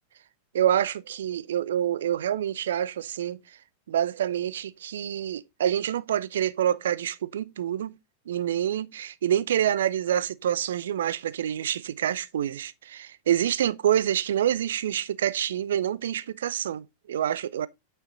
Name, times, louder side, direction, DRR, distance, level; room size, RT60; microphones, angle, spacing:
voice 1, 0.5-3.4 3.9-8.0 8.3-17.7, right 10 dB, 60° right, 0.6 m, -27 dB
9.3 x 5.8 x 4.0 m
figure-of-eight pair, 90°, 0 cm